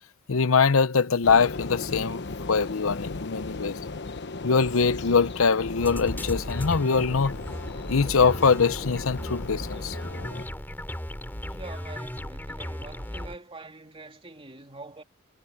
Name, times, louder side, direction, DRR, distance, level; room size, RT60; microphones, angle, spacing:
voice 1, 0.3-2.2 2.5-3.7 4.4-7.3 7.9-10.0, left 5 dB, 85° left, 0.7 m, -22 dB
sound 1, 1.2-10.5, left 3 dB, 55° left, 1.0 m, -37 dB
sound 2, 5.8-13.4, equal, 10° left, 3.1 m, -36 dB
voice 2, 11.4-15.0, right 2 dB, 25° right, 3.2 m, -44 dB
head